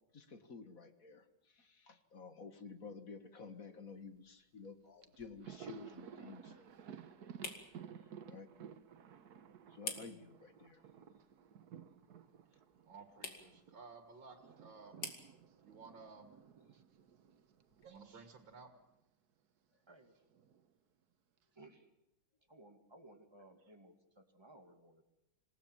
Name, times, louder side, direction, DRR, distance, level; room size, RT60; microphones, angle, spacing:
voice 1, 0.1-6.7 8.3-8.5 9.7-10.8, left 4 dB, 50° left, 8 dB, 1.9 m, -52 dB
sound 1, 3.9-18.7, left 4 dB, 65° left, 3.3 m, -54 dB
Thunder, 4.6-4.7 5.0-13.8 14.1-18.4 18.7-18.8 20.0-20.7, right 8 dB, 60° right, 1.5 m, -55 dB
voice 2, 12.9-15.0 15.6-16.3 17.8-18.7, right 4 dB, 90° right, 5 dB, 2.5 m, -55 dB
voice 3, 19.9-20.2 21.6-21.9 22.5-25.0, right 2 dB, 15° right, 4 dB, 2.3 m, -60 dB
27.0 x 18.0 x 7.5 m, 0.91 s
omnidirectional pair, 2.0 m